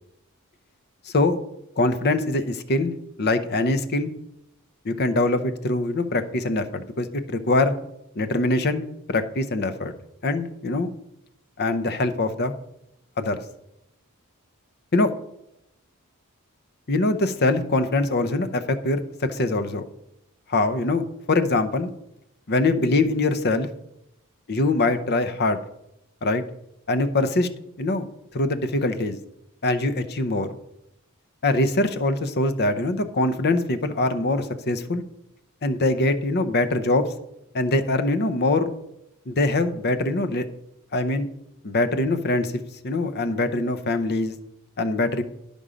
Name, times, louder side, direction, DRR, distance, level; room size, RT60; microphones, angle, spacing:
voice 1, 1.8-4.1 4.8-7.8 8.2-9.9 10.2-10.9 11.6-12.5 13.2-13.4 14.9-15.1 16.9-19.8 20.5-21.0 21.3-21.9 22.5-23.7 24.5-25.6 26.2-26.4 26.9-27.5 27.8-28.0 28.3-29.2 29.6-30.5 31.4-35.0 35.6-37.1 37.5-38.7 39.3-40.5 40.9-41.3 41.6-42.5 42.8-44.4 44.8-45.2, left 2 dB, 45° left, 10 dB, 0.7 m, -23 dB
11.0 x 5.3 x 5.0 m, 0.81 s
head